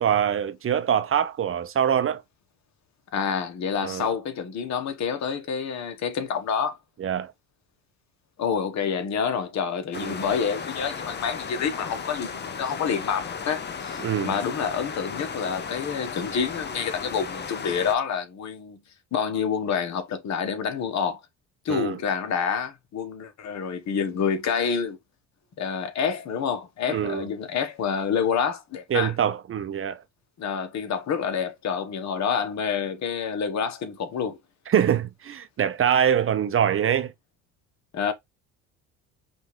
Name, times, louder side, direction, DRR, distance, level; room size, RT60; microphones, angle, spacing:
voice 1, 0.0-2.2 3.8-4.1 7.0-7.3 9.9-10.2 14.0-14.4 21.7-22.0 26.9-27.3 28.9-30.0 34.7-37.1, right 9 dB, 40° right, 0.7 m, -24 dB
voice 2, 3.1-6.8 8.4-18.8 19.1-21.2 21.6-25.0 25.6-29.1 30.4-34.4 37.9-38.1, left 6 dB, 50° left, 1.2 m, -28 dB
sound 1, 9.9-18.0, left 6 dB, 30° left, 0.8 m, -35 dB
5.3 x 2.6 x 3.2 m
supercardioid pair, 85°, 35 cm